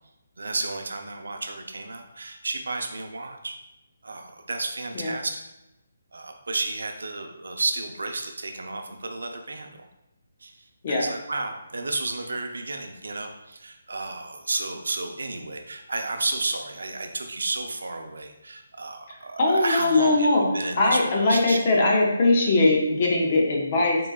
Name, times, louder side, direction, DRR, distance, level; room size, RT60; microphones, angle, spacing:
voice 1, 0.4-3.5 4.0-5.4 6.1-9.9 10.4-21.6, right 2 dB, 90° right, 4 dB, 0.6 m, -32 dB
voice 2, 19.1-20.4 20.8-24.0, left 2 dB, 25° left, -1 dB, 0.6 m, -21 dB
3.8 x 3.7 x 2.3 m, 0.93 s
hypercardioid pair, 180°, 0 cm